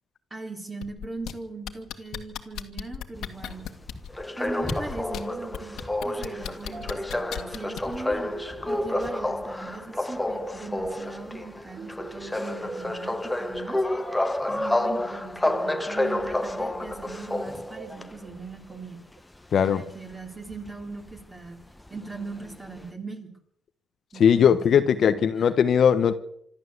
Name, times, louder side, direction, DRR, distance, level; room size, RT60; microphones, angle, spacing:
voice 1, 0.3-3.7 4.4-8.3 8.7-13.8 14.5-19.0 19.5-21.6 21.9-23.3 24.1-24.8 25.1-25.3, right 3 dB, 15° right, 4 dB, 3.6 m, -39 dB
sound 1, 0.8-1.3 1.7-4.1 4.6-5.2 5.5-8.0 9.0-9.1, left 10 dB, 75° left, 2.1 m, -35 dB
sound 2, 3.2-18.4 19.6-21.4 21.8-21.9 22.1-22.9, left 1 dB, 5° left, 1.1 m, -30 dB
sound 3, 4.4-19.2, right 5 dB, 45° right, 2.1 m, -46 dB
voice 2, 19.5-19.8 24.2-26.2, left 8 dB, 50° left, 10 dB, 1.1 m, -19 dB
26.5 x 12.0 x 8.1 m, 0.70 s
cardioid pair, 145°, 0 cm